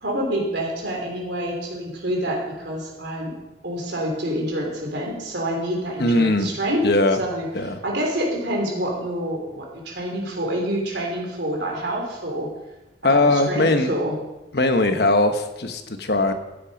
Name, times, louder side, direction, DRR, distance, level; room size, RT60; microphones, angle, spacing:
voice 1, 0.0-3.3 3.6-6.9 7.2-7.5 7.8-12.5 13.0-14.2, right 1 dB, 75° right, 0 dB, 3.4 m, -27 dB
voice 2, 6.0-6.5 6.8-7.2 7.5-7.8 13.0-13.9 14.5-16.3, left 2 dB, 60° left, 7 dB, 1.2 m, -20 dB
14.0 x 8.8 x 5.2 m, 1.0 s
head